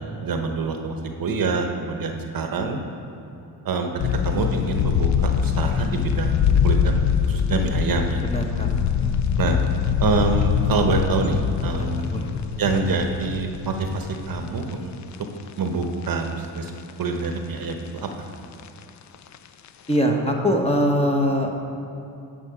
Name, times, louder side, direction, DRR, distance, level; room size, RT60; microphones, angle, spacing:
voice 1, 0.2-2.8 3.6-3.9 4.2-8.2 9.4-9.6 10.0-12.2 12.6-14.9 15.6-16.7 17.0-18.1, right 4 dB, 50° right, 4 dB, 1.0 m, -26 dB
sound 1, 4.0-15.5 15.8-15.9 16.4-17.3 17.6-17.7 18.0-19.4 19.7-20.0, left 8 dB, 45° left, 0.5 m, -23 dB
voice 2, 8.2-8.7 11.7-12.4 19.9-21.7, equal, 15° left, 1 dB, 1.2 m, -23 dB
10.0 x 5.5 x 4.9 m, 2.8 s
supercardioid pair, 70°, 43 cm